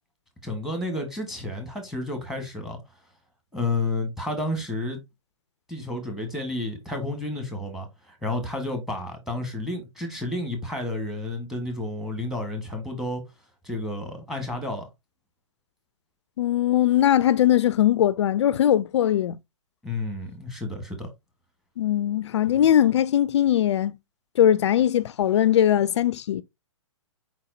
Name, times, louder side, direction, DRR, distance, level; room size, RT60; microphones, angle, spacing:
voice 1, 0.4-2.8 3.5-5.0 5.7-13.2 13.6-14.9 19.8-21.1, left 2 dB, ahead, 1.3 m, -31 dB
voice 2, 16.4-19.4 21.8-23.9 24.4-26.4, left 11 dB, 60° left, 0.4 m, -20 dB
4.6 x 4.1 x 2.6 m
hypercardioid pair, 135°, 16 cm